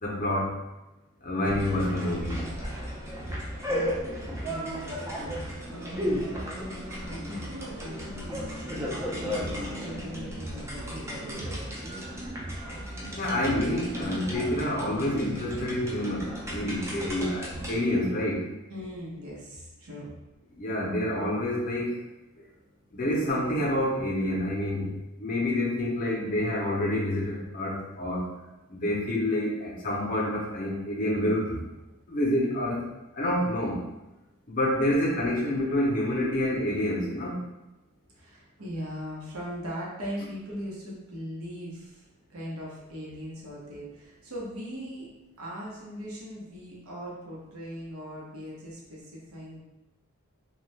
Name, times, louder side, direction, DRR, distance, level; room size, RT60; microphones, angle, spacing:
voice 1, 0.0-0.5 1.2-2.4 13.2-18.4 20.6-21.9 22.9-24.9 25.2-28.2 28.7-31.6 32.1-32.8 33.2-33.8 34.5-37.4, left 1 dB, 40° left, -4 dB, 0.6 m, -28 dB
sound 1, 1.4-17.8, equal, 15° right, 0.4 m, -34 dB
voice 2, 4.4-11.9 18.7-20.1 38.1-42.0 42.3-45.1 45.4-49.6, equal, 75° right, -4 dB, 0.8 m, -40 dB
2.6 x 2.2 x 3.2 m, 1.0 s
head